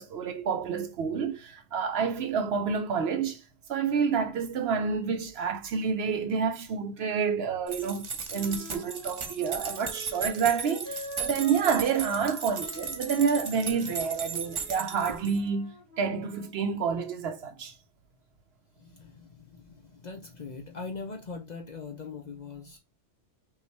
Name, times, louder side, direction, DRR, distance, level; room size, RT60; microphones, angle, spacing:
voice 1, 0.0-3.4 3.7-17.7, right 6 dB, 65° right, 0.8 m, -29 dB
sound 1, 7.7-15.4, right 5 dB, 35° right, 0.5 m, -37 dB
Wind instrument woodwind instrument, 8.3-12.3 12.5-16.5, right 1 dB, 15° left, 1.2 m, -45 dB
voice 2, 18.8-22.8, left 4 dB, 45° left, 0.6 m, -41 dB
5.5 x 2.4 x 3.2 m
omnidirectional pair, 1.2 m